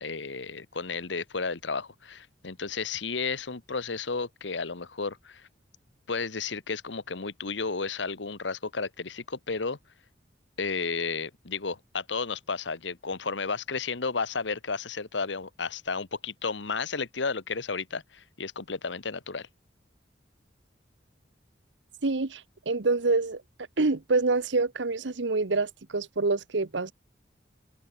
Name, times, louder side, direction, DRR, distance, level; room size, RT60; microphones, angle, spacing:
voice 1, 0.0-5.5 6.1-9.8 10.6-19.5, left 4 dB, 85° left, 1.3 m, -33 dB
voice 2, 22.0-23.4 23.8-26.9, right 3 dB, 80° right, 1.0 m, -26 dB
head